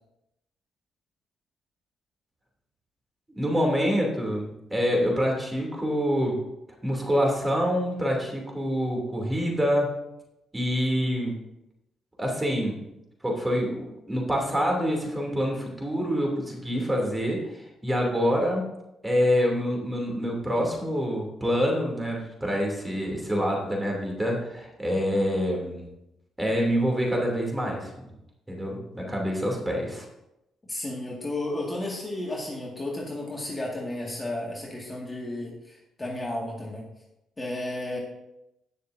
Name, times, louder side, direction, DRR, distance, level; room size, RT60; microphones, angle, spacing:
voice 1, 3.4-6.4 6.8-9.9 10.5-11.3 12.2-12.8 13.2-18.7 19.0-25.9 26.4-28.1 28.5-30.0, equal, 15° right, 0 dB, 3.0 m, -26 dB
voice 2, 30.7-36.9 37.4-38.0, left 1 dB, 20° left, -3 dB, 2.1 m, -33 dB
18.0 x 6.6 x 2.7 m, 0.88 s
cardioid pair, 90°, 0 cm